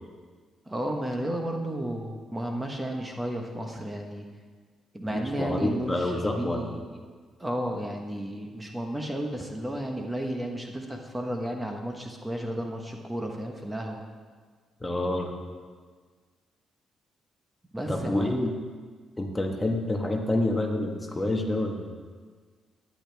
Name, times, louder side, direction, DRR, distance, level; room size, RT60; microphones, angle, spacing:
voice 1, 0.7-4.2 4.9-6.8 7.4-14.0 17.7-18.4, right 1 dB, 15° right, 2 dB, 1.4 m, -33 dB
voice 2, 5.1-6.7 14.8-15.3 17.9-18.5 19.2-21.9, left 1 dB, 15° left, 2 dB, 1.5 m, -28 dB
15.5 x 10.5 x 3.5 m, 1.5 s
cardioid pair, 90°, 0 cm